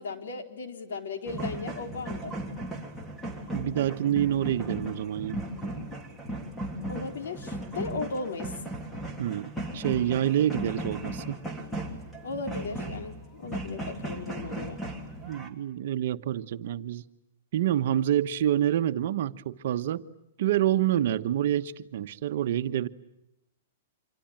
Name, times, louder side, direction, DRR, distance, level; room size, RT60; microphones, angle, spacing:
voice 1, 0.0-2.3 6.9-8.5 12.2-14.8, left 3 dB, 80° left, 6 dB, 4.1 m, -36 dB
sound 1, 1.3-15.5, right 1 dB, 5° left, 3.2 m, -36 dB
voice 2, 3.5-5.4 9.2-11.4 15.2-17.0 17.5-20.0 20.4-22.9, right 11 dB, 60° right, 11 dB, 1.2 m, -27 dB
27.0 x 24.0 x 9.0 m, 0.85 s
hypercardioid pair, 160°, 0 cm